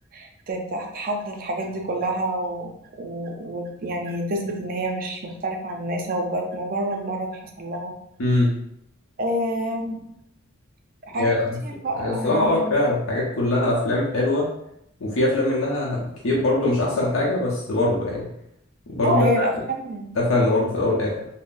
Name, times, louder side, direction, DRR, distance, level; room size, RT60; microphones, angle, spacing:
voice 1, 0.1-2.7 3.0-7.9 9.2-10.1 11.1-11.3 11.6-12.7 19.0-20.1, right 1 dB, 45° right, 2 dB, 0.5 m, -28 dB
voice 2, 8.2-8.5 11.2-11.6 11.9-14.5 15.0-18.3 18.9-19.5 20.2-21.1, left 2 dB, 75° left, -4 dB, 0.7 m, -22 dB
3.6 x 2.1 x 2.5 m, 0.77 s
head